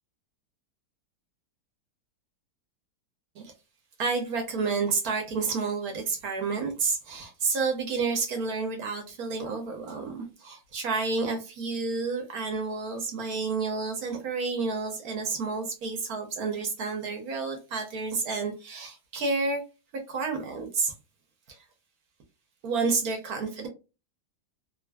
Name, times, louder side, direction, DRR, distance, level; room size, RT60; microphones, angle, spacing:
voice 1, 4.0-19.6 20.1-20.9 21.5-21.6 22.6-23.7, right 4 dB, 65° right, 1.1 m, -30 dB
3.0 x 2.4 x 2.2 m
omnidirectional pair, 1.9 m